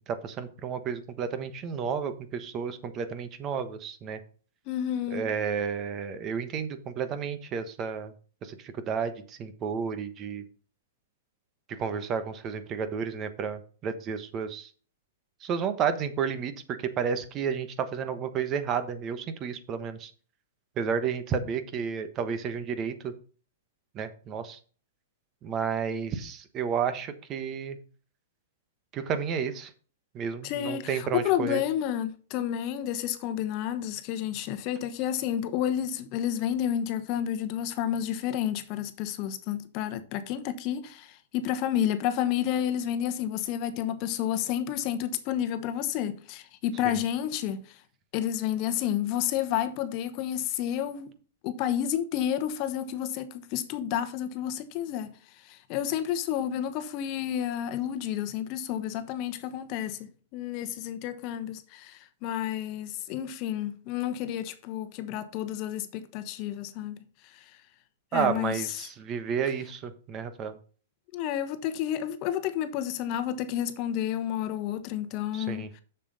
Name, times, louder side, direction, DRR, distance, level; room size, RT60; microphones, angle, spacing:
voice 1, 0.0-4.2 5.1-8.1 8.4-10.4 11.7-14.7 15.4-16.5 17.0-20.1 20.8-23.1 23.9-24.6 25.4-27.8 28.9-29.7 30.1-31.6 46.8-46.9 68.1-70.6 75.3-75.7, right 7 dB, 30° right, 1.1 m, -31 dB
voice 2, 4.7-5.3 30.4-47.8 48.1-51.1 51.4-55.2 55.4-67.4 68.1-68.8 71.1-75.8, left 10 dB, 40° left, 1.0 m, -30 dB
7.0 x 6.9 x 4.1 m
hypercardioid pair, 135°, 0 cm